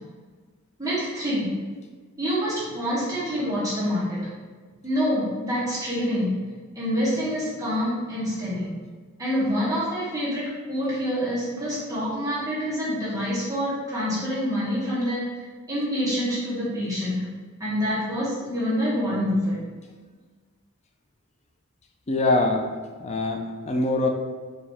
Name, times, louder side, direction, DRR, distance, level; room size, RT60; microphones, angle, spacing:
voice 1, 0.8-1.5 2.2-4.2 4.8-6.3 6.7-8.7 9.2-15.2 15.7-17.2 17.6-19.6, equal, 15° right, -9 dB, 1.4 m, -26 dB
voice 2, 22.1-22.7 23.0-24.1, left 2 dB, 30° left, 4 dB, 0.5 m, -23 dB
4.7 x 3.0 x 3.4 m, 1.5 s
head